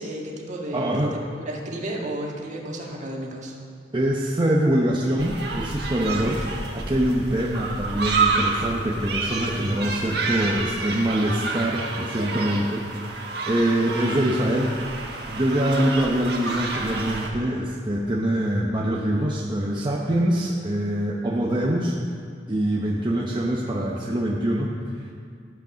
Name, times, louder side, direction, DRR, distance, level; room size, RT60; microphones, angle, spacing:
voice 1, 0.0-3.6, right 1 dB, 45° right, -1 dB, 1.7 m, -32 dB
voice 2, 0.7-1.2 3.9-14.8 15.0-22.0 22.5-25.1, right 1 dB, 25° right, -3 dB, 0.8 m, -24 dB
sound 1, 5.2-17.3, right 3 dB, 65° right, 1.6 m, -29 dB
12.0 x 8.2 x 6.3 m, 2.2 s
head